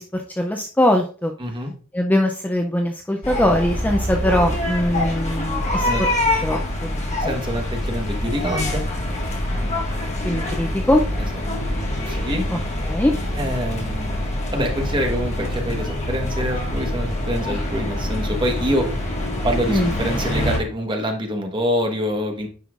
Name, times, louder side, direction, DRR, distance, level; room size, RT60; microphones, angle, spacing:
voice 1, 0.0-1.3 1.9-6.1 6.4-7.4 10.2-11.0 12.5-12.6 12.8-13.1 19.7-19.9, left 1 dB, 10° left, 3 dB, 0.4 m, -21 dB
voice 2, 1.4-1.7 5.8-6.0 7.2-8.8 12.1-12.5 13.3-14.2 14.5-19.0 19.4-22.5, equal, 25° right, 3 dB, 1.2 m, -25 dB
sound 1, 3.2-20.6, left 1 dB, 35° left, 1.6 m, -25 dB
9.3 x 5.5 x 2.4 m, 0.40 s
head